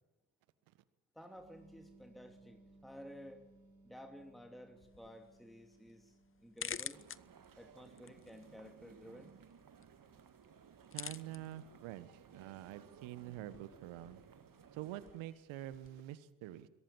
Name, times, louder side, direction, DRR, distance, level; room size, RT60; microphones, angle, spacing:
voice 1, 1.1-3.4 3.8-7.0 7.6-9.3, equal, ahead, 4 dB, 2.9 m, -54 dB
sound 1, 1.3-7.7, right 2 dB, 85° right, 4.4 m, -64 dB
sound 2, 4.8-16.0, left 7 dB, 25° left, 0.8 m, -52 dB
sound 3, 6.9-15.2, right 7 dB, 40° right, 1.9 m, -60 dB
voice 2, 10.9-14.2 14.7-16.7, right 14 dB, 65° right, 15 dB, 1.4 m, -47 dB
23.0 x 17.0 x 8.8 m, 1.1 s
figure-of-eight pair, 45°, 49 cm